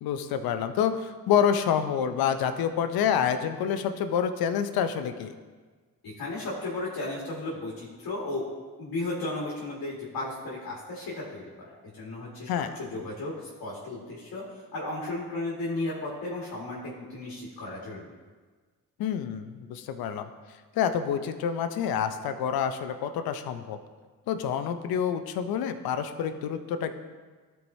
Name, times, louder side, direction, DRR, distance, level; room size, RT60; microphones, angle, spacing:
voice 1, 0.0-5.3 12.5-12.7 19.0-20.3 20.8-23.8 24.3-26.9, left 8 dB, 90° left, 9 dB, 0.6 m, -27 dB
voice 2, 6.0-8.4 8.8-11.7 11.9-12.5 12.8-14.4 14.7-18.1, left 2 dB, 75° left, -5 dB, 1.8 m, -34 dB
13.0 x 4.7 x 2.7 m, 1.4 s
supercardioid pair, 50°, 35 cm